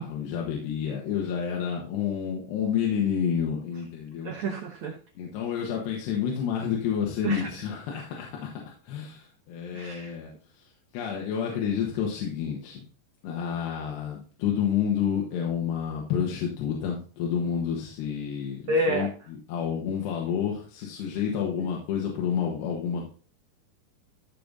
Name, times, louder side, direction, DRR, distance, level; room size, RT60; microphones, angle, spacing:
voice 1, 0.0-4.3 5.2-8.5 8.8-10.6 10.9-12.8 13.2-19.1 19.5-23.1, left 8 dB, 75° left, -1 dB, 3.6 m, -29 dB
voice 2, 4.2-5.0 7.2-7.5 9.7-10.1 18.7-19.1 21.6-21.7, right 1 dB, 75° right, 1 dB, 1.6 m, -28 dB
14.5 x 5.2 x 4.0 m, 0.41 s
omnidirectional pair, 4.9 m